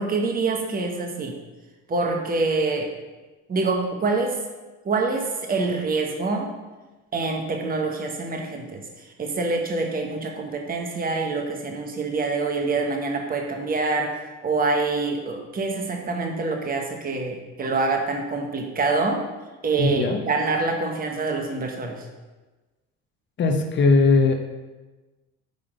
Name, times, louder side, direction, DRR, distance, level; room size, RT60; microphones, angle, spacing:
voice 1, 0.0-1.3 1.9-2.9 3.5-4.4 4.8-6.5 7.1-8.8 9.2-14.2 14.4-19.2 19.6-22.0, right 3 dB, 30° right, 2 dB, 1.2 m, -25 dB
voice 2, 19.8-20.2 23.4-24.3, left 3 dB, 35° left, 4 dB, 1.0 m, -19 dB
9.5 x 3.7 x 5.0 m, 1.2 s
supercardioid pair, 90°, 31 cm